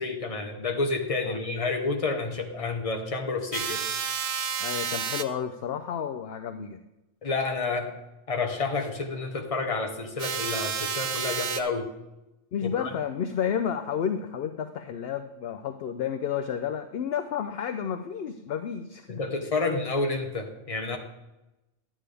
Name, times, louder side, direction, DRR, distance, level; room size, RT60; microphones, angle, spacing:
voice 1, 0.0-4.0 7.2-7.9 8.3-11.9 12.8-12.9 19.1-21.0, left 3 dB, 30° left, 4 dB, 1.0 m, -29 dB
sound 1, 3.5-5.2 10.2-11.6, right 7 dB, 65° right, 0.4 m, -30 dB
voice 2, 4.6-6.8 12.5-19.2, left 8 dB, 60° left, 8 dB, 0.7 m, -31 dB
11.0 x 8.9 x 3.4 m, 0.97 s
omnidirectional pair, 1.4 m